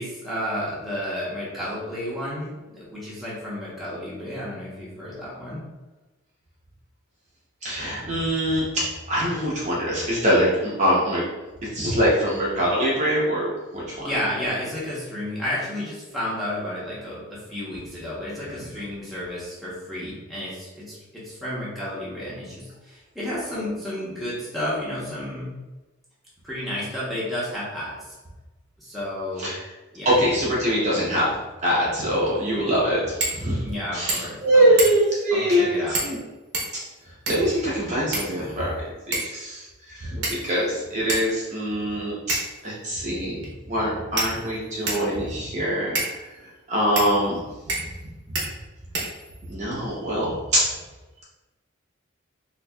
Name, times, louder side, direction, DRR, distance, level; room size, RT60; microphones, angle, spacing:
voice 1, 0.0-5.6 14.0-25.5 26.4-28.2 28.8-29.5 29.9-30.1 33.6-34.7 35.3-36.0, left 1 dB, ahead, -9 dB, 0.9 m, -31 dB
voice 2, 7.6-8.6 9.1-11.2 11.7-14.1 29.4-29.6 30.0-31.3 31.6-33.6 33.9-36.2 37.3-38.8 39.1-39.6 39.9-42.4 42.6-43.4 43.7-46.0 46.7-47.4 49.5-50.6, equal, 35° right, -6 dB, 0.7 m, -23 dB
sound 1, 33.2-33.4 33.7-33.8 34.1-34.4 34.8-35.2 35.9-36.2 36.5-37.6 38.1-38.7 39.1-39.4 40.2-40.6 41.1-41.2 42.3-42.6 43.4-43.5 44.2-45.1 46.0-46.1 47.0-47.1 47.7-48.0 48.4-48.5 48.9-49.5, right 2 dB, 65° right, 0.9 m, -28 dB
4.2 x 2.9 x 2.3 m, 1.1 s
head